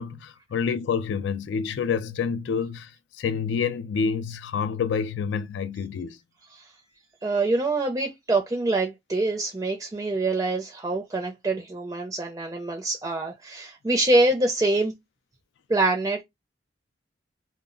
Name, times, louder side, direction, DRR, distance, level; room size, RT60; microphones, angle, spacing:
voice 1, 0.0-2.9 3.2-6.2, left 6 dB, 85° left, 0.3 m, -28 dB
voice 2, 7.2-14.9 15.7-16.2, right 2 dB, 20° right, 0.4 m, -25 dB
2.1 x 2.0 x 3.6 m
head